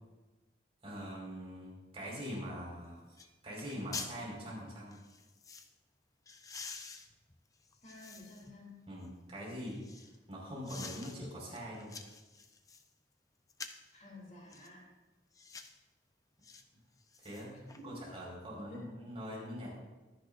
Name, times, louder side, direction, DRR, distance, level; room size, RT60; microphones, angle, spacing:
voice 1, 0.8-3.0 3.4-5.0 8.9-9.8 10.3-12.0 17.2-17.5 17.8-19.7, equal, 35° right, -3 dB, 5.0 m, -43 dB
sound 1, 2.7-2.8 3.2-3.3 3.6-4.2 4.9-5.7 6.3-8.5 9.0-10.2 10.6-11.2 11.6-12.9 13.5-13.9 14.5-14.7 15.3-15.8 16.4-16.6 17.0-17.8 18.2-18.3, left 4 dB, 20° left, 0.6 m, -48 dB
voice 2, 7.8-8.8 13.9-14.8 17.8-18.0 18.7-18.8, left 1 dB, 40° left, -2 dB, 3.1 m, -51 dB
22.5 x 10.5 x 2.6 m, 1.2 s
head